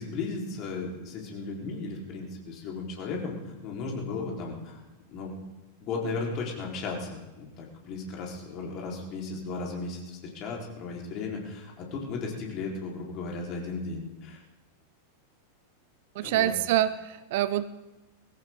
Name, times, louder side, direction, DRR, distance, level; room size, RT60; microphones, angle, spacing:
voice 1, 0.0-4.8 5.1-5.3 5.8-14.4 16.2-16.5, left 4 dB, 40° left, -1 dB, 4.1 m, -35 dB
voice 2, 16.2-17.8, right 13 dB, 50° right, 15 dB, 0.6 m, -26 dB
20.5 x 17.0 x 3.8 m, 1.1 s
figure-of-eight pair, 90°, 0 cm